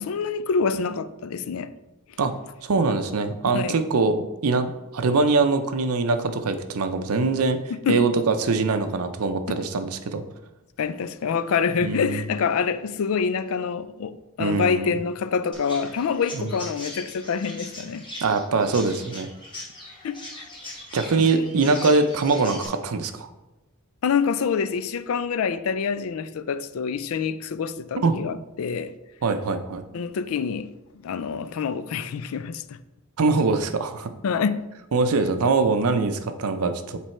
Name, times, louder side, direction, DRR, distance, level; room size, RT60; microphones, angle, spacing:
voice 1, 0.0-1.7 3.5-3.8 7.8-8.0 10.8-18.0 20.0-20.5 21.2-21.3 24.0-28.9 29.9-30.7 31.0-32.8 34.2-34.7, left 6 dB, 65° left, 0.4 m, -26 dB
voice 2, 2.6-7.6 7.9-10.2 11.8-12.2 14.4-14.9 16.3-16.5 18.2-19.3 20.9-23.3 28.0-28.2 29.2-29.8 33.2-34.1 34.9-37.0, right 3 dB, 80° right, 0.6 m, -23 dB
Chirp tweet, 15.5-22.7, left 1 dB, 20° left, 1.4 m, -40 dB
7.6 x 3.3 x 4.4 m
head